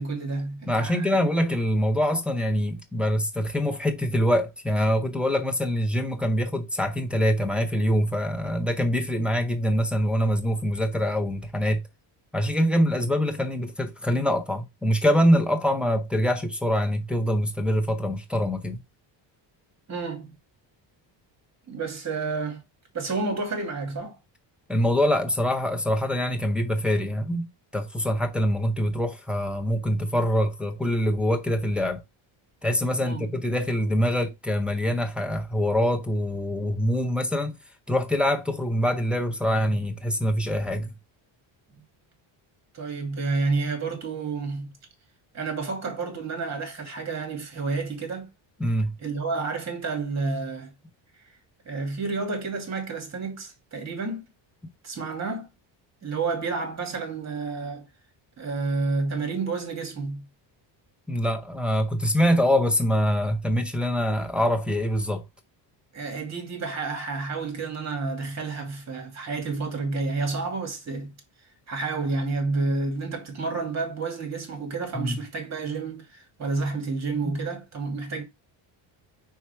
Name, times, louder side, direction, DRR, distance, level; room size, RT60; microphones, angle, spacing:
voice 1, 0.0-1.1 19.9-20.3 21.7-22.6 22.9-24.2 33.0-33.3 42.7-44.7 45.3-48.3 49.0-50.7 51.7-54.3 54.8-55.5 56.0-57.8 58.4-60.2 65.9-71.1 71.7-78.2, right 3 dB, 35° right, 2.5 m, -30 dB
voice 2, 0.7-11.8 12.3-18.8 24.7-27.5 27.7-32.0 32.6-37.5 37.9-40.9 48.6-48.9 61.1-65.2 74.9-75.2 77.2-77.4, equal, ahead, 0.6 m, -24 dB
4.7 x 4.7 x 4.3 m
cardioid pair, 160°, 48 cm